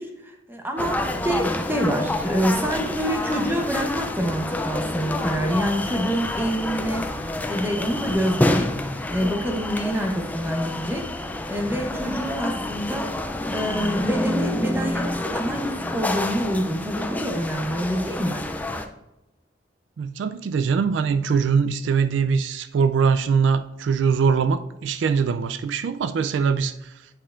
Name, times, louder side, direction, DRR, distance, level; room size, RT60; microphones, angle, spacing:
voice 1, 0.0-7.0 7.5-8.7 9.1-11.1 11.5-13.1 13.5-18.4, equal, 10° right, 3 dB, 0.8 m, -26 dB
sound 1, 0.8-18.9, left 1 dB, 10° left, 0.3 m, -28 dB
voice 2, 20.0-26.9, right 5 dB, 75° right, 11 dB, 0.3 m, -22 dB
8.5 x 5.4 x 2.4 m, 0.92 s
head